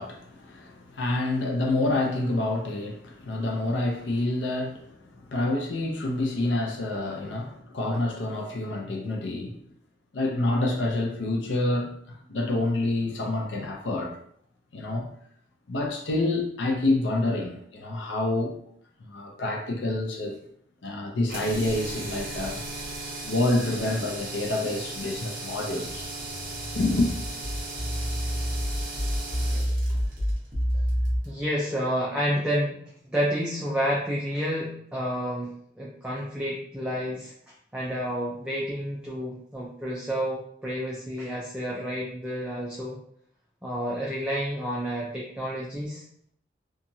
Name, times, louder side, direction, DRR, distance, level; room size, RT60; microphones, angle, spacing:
voice 1, 0.0-9.6 10.1-14.2 14.7-15.1 15.7-18.6 19.1-20.4 20.8-22.6 23.2-26.1 26.8-27.1, left 2 dB, 90° left, 0.5 m, -27 dB
sound 1, 21.3-31.4, right 2 dB, 50° right, 0.8 m, -37 dB
sound 2, 25.9-31.2, equal, 25° right, 1.0 m, -28 dB
voice 2, 31.3-32.8 33.1-43.0 43.6-46.0, equal, 5° right, 0.4 m, -30 dB
2.8 x 2.4 x 2.6 m
head